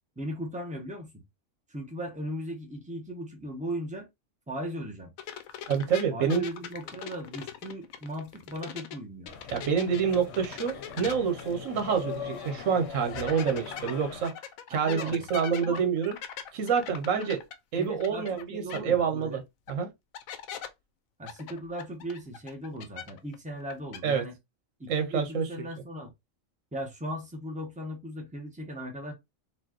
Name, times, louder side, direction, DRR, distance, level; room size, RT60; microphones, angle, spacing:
voice 1, 0.2-1.2 1.7-4.1 4.5-5.1 6.1-9.3 14.8-15.3 15.6-15.8 17.1-17.3 17.7-19.4 21.2-24.3 24.8-26.1 26.7-29.1, equal, 5° right, 1.0 m, -37 dB
sound 1, 5.2-9.0 9.3-12.2 12.5-12.6 13.2-18.4 18.7-18.8 19.7-19.8 20.1-20.7 21.3-23.4 23.6-24.0, left 9 dB, 85° left, 1.0 m, -41 dB
voice 2, 5.7-6.4 9.5-14.3 14.7-16.2 16.5-17.4 17.7-19.4 19.7-19.9 24.0-24.2 24.9-25.5, right 6 dB, 75° right, 1.2 m, -27 dB
sound 2, 9.3-14.3, left 6 dB, 60° left, 1.0 m, -41 dB
4.4 x 2.6 x 2.9 m
omnidirectional pair, 1.4 m